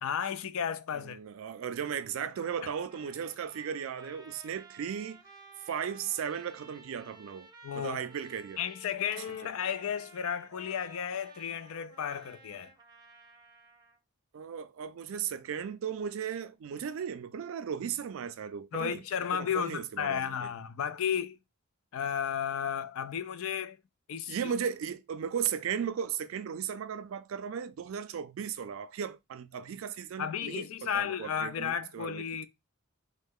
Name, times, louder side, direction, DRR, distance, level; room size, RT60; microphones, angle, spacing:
voice 1, 0.0-1.2 7.6-8.0 8.6-12.7 18.7-21.4 21.9-23.8 24.1-24.5 30.2-32.5, left 8 dB, 70° left, 0.4 m, -33 dB
voice 2, 0.9-5.2 5.7-8.6 14.3-19.0 19.3-20.5 24.3-32.5, right 7 dB, 65° right, 0.3 m, -36 dB
Trumpet, 2.3-14.0, right 3 dB, 20° right, 0.6 m, -55 dB
3.1 x 2.1 x 3.5 m
head